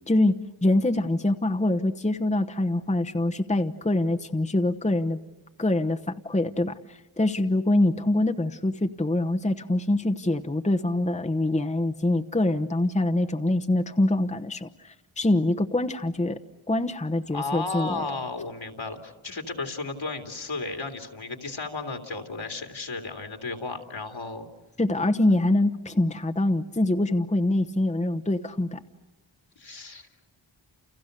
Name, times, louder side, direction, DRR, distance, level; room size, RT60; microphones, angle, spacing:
voice 1, 0.1-5.2 5.6-16.4 16.7-18.0 24.8-28.8, left 1 dB, 15° left, 5 dB, 1.0 m, -24 dB
voice 2, 17.3-24.4 29.6-30.1, left 3 dB, 70° left, 5 dB, 3.0 m, -34 dB
30.0 x 29.5 x 6.7 m, 1.0 s
wide cardioid pair, 55°, 48 cm